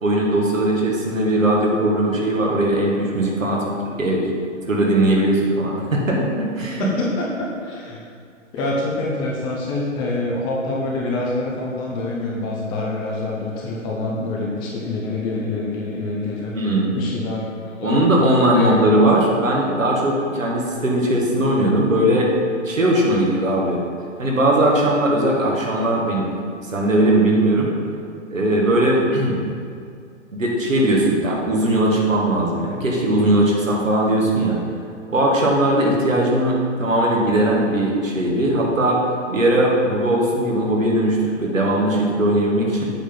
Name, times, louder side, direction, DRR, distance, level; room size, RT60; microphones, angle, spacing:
voice 1, 0.0-3.6 4.0-4.3 4.7-6.9 16.5-17.0 17.8-22.3 22.6-23.8 24.2-26.3 26.7-27.7 28.3-29.4 30.3-34.6 35.1-39.0 39.3-42.9, right 1 dB, 85° right, -2 dB, 1.9 m, -19 dB
voice 2, 6.6-8.0 8.5-16.5 16.9-18.0 18.5-18.8, left 2 dB, 15° left, -3 dB, 0.5 m, -26 dB
8.1 x 6.0 x 3.9 m, 2.3 s
figure-of-eight pair, 130°, 38 cm